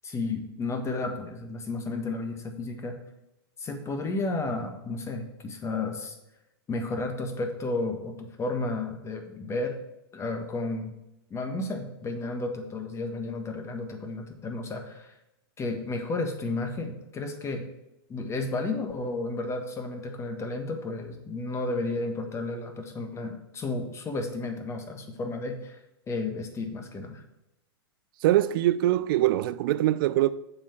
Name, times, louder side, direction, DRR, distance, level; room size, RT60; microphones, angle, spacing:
voice 1, 0.0-3.0 3.6-6.2 6.7-9.8 10.1-10.9 11.3-15.1 15.6-17.7 18.1-25.8 26.1-27.2, left 2 dB, 20° left, 1.4 m, -32 dB
voice 2, 28.2-30.3, right 14 dB, 60° right, 0.4 m, -23 dB
7.3 x 4.9 x 7.1 m
hypercardioid pair, 120°, 13 cm